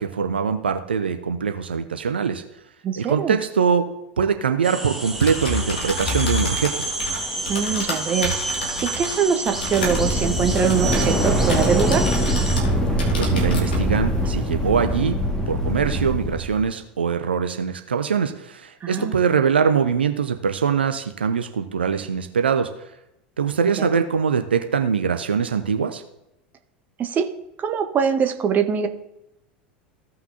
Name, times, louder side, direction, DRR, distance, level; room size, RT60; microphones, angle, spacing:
voice 1, 0.0-2.4 3.0-3.9 4.2-6.8 13.2-15.2 15.5-22.7 23.4-26.0, right 6 dB, 75° right, 8 dB, 0.5 m, -22 dB
voice 2, 2.8-3.4 7.5-8.3 8.8-12.1 18.8-19.1 23.8-23.9 27.0-27.3 27.6-28.9, right 7 dB, 30° right, 7 dB, 1.0 m, -23 dB
sound 1, 4.6-12.6, right 2 dB, 5° right, 1.5 m, -30 dB
Typing, 5.0-12.7 13.0-13.8, left 2 dB, 70° left, 2.2 m, -30 dB
sound 2, 9.6-16.6, equal, 10° left, 1.8 m, -22 dB
16.0 x 5.9 x 2.7 m, 0.86 s
figure-of-eight pair, 80°, 6 cm